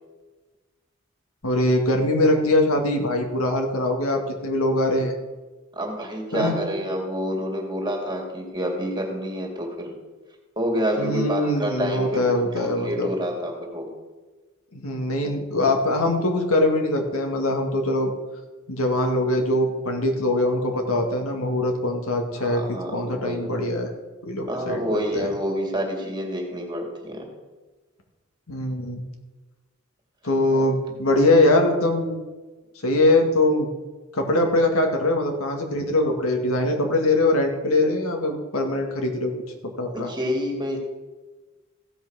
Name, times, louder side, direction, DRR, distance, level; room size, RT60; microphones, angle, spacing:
voice 1, 1.4-5.1 6.3-6.5 11.0-13.1 14.7-18.1 18.7-23.9 24.2-25.3 28.5-29.0 30.2-32.2 32.8-33.7 34.1-39.3 39.6-40.1, left 1 dB, 85° left, 3 dB, 1.9 m, -22 dB
voice 2, 5.7-9.9 10.6-13.9 22.3-23.7 24.5-27.3 30.5-30.7 31.1-31.3 39.9-40.8, equal, 20° right, 1 dB, 2.3 m, -28 dB
15.5 x 5.6 x 6.3 m, 1.3 s
head